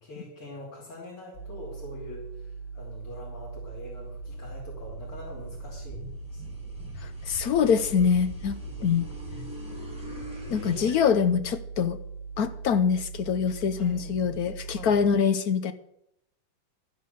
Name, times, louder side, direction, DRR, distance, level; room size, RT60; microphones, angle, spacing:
voice 1, 0.0-6.6 8.6-9.4 13.7-15.0, left 1 dB, 90° left, -6 dB, 4.1 m, -45 dB
sound 1, 1.3-15.1, right 5 dB, 30° left, 1.6 m, -40 dB
sound 2, 4.2-11.0, left 2 dB, 5° right, 5.8 m, -43 dB
voice 2, 7.3-9.1 10.5-12.0 12.4-15.7, left 7 dB, 65° left, 11 dB, 1.0 m, -24 dB
12.5 x 10.5 x 6.7 m, 0.77 s
omnidirectional pair, 2.3 m